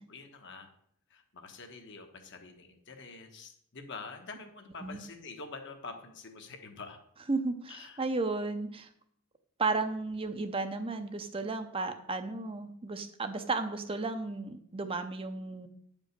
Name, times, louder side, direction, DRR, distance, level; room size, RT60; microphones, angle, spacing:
voice 1, 0.1-0.7 1.1-7.0 7.7-8.0, left 4 dB, 55° left, 5 dB, 1.3 m, -46 dB
voice 2, 7.3-8.9 9.6-15.7, right 3 dB, 25° right, 8 dB, 0.6 m, -34 dB
9.5 x 5.2 x 6.6 m, 0.68 s
head